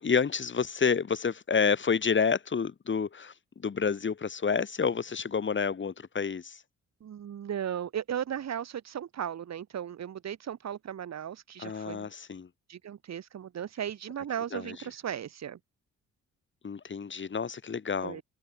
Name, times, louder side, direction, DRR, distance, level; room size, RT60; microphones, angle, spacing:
voice 1, 0.0-6.6 11.6-12.5 14.5-14.7 16.6-18.2, left 6 dB, 40° left, 6.0 m, -29 dB
voice 2, 7.0-12.1 12.7-15.6 18.0-18.2, right 9 dB, 60° right, 5.6 m, -36 dB
cardioid pair, 90°, 30 cm